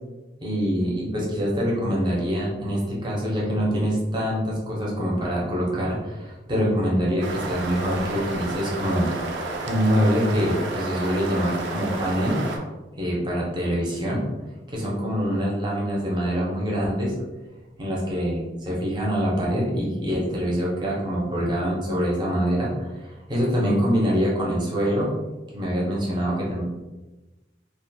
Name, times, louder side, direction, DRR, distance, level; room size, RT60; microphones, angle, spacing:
voice 1, 0.4-9.3 9.7-12.4 13.0-14.2 14.7-17.1 17.8-25.1 25.5-26.6, equal, 25° right, -4 dB, 0.6 m, -25 dB
sound 1, 7.2-12.6, right 2 dB, 70° right, 0.4 m, -31 dB
2.4 x 2.2 x 2.6 m, 1.1 s
head